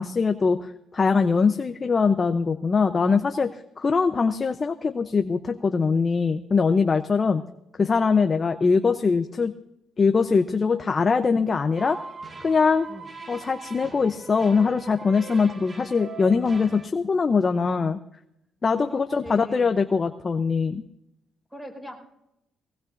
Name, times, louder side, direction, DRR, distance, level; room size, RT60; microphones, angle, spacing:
voice 1, 0.0-7.4 7.8-9.5 10.0-12.0 12.4-12.9 13.3-18.0 18.6-20.8, left 5 dB, 35° left, 7 dB, 0.7 m, -22 dB
sound 1, 11.8-16.9, right 4 dB, 35° right, 1.1 m, -41 dB
voice 2, 18.8-19.8 21.5-22.0, equal, 5° right, 2 dB, 5.1 m, -41 dB
20.0 x 18.5 x 2.6 m, 0.83 s
cardioid pair, 90°, 0 cm